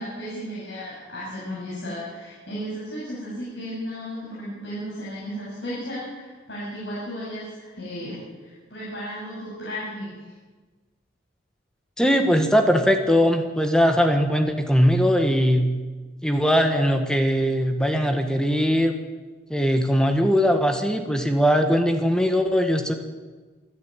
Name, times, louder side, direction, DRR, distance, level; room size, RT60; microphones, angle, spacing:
voice 1, 0.0-10.3, equal, 65° left, -7 dB, 7.7 m, -34 dB
voice 2, 12.0-15.7 16.2-18.9 19.5-22.9, equal, 5° left, 5 dB, 1.6 m, -20 dB
27.0 x 10.5 x 9.1 m, 1.3 s
head